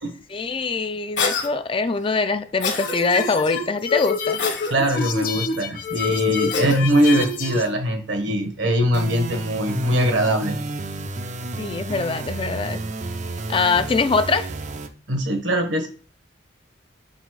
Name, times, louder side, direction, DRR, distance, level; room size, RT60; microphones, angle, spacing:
voice 1, 0.3-4.4 11.6-12.8 13.5-14.5, left 4 dB, 25° left, 10 dB, 0.4 m, -23 dB
Cough, 1.2-1.5 2.6-3.0 4.4-4.8 6.5-6.8, left 5 dB, 65° left, 1.4 m, -25 dB
sound 1, 2.8-7.7, left 5 dB, 45° left, 0.8 m, -27 dB
voice 2, 4.7-10.6 15.1-15.9, right 1 dB, 70° right, 5 dB, 1.3 m, -21 dB
sound 2, 8.9-14.9, right 3 dB, 40° right, 0.5 m, -31 dB
5.4 x 4.1 x 4.6 m, 0.39 s
head